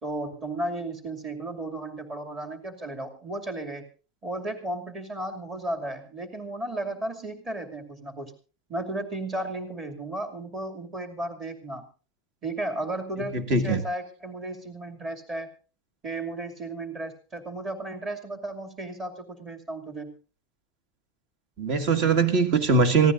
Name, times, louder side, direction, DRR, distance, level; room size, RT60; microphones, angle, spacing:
voice 1, 0.0-3.9 4.2-8.3 8.7-11.8 12.4-15.5 16.0-20.1, right 2 dB, 20° right, 4 dB, 2.6 m, -34 dB
voice 2, 13.3-13.8 21.6-23.1, right 4 dB, 40° right, 10 dB, 1.9 m, -21 dB
25.0 x 16.0 x 2.6 m, 0.36 s
supercardioid pair, 175°, 0 cm